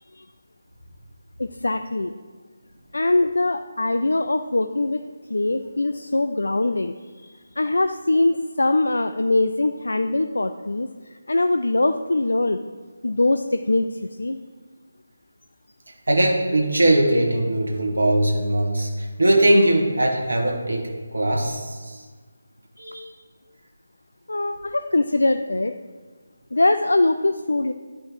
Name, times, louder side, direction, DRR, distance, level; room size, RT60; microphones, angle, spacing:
voice 1, 1.4-2.2 2.9-5.0 5.3-12.6 13.0-14.4 24.3-25.7 26.5-27.7, left 2 dB, 70° left, 9 dB, 0.4 m, -22 dB
voice 2, 16.1-22.0 22.8-23.1, right 1 dB, 70° right, 0 dB, 1.6 m, -20 dB
10.5 x 5.3 x 4.7 m, 1.4 s
figure-of-eight pair, 150°, 0 cm